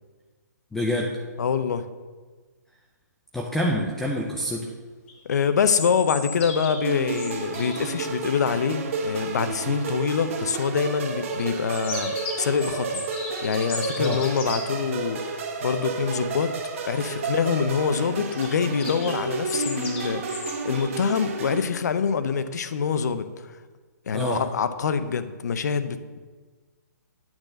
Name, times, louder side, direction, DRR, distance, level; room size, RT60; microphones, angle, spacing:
voice 1, 0.7-1.1 3.3-4.7 14.0-14.2 24.1-24.4, equal, 5° left, -1 dB, 0.4 m, -26 dB
voice 2, 1.4-1.8 5.2-13.0 13.4-15.2 15.6-16.5 16.9-23.3 24.1-26.2, left 6 dB, 65° left, 11 dB, 0.6 m, -25 dB
sound 1, 5.1-8.0 11.3-14.6 18.2-21.0, left 4 dB, 40° left, 1.5 m, -36 dB
sound 2, 6.8-21.6, right 4 dB, 45° right, 1.0 m, -31 dB
8.8 x 3.9 x 6.5 m, 1.4 s
hypercardioid pair, 160°, 10 cm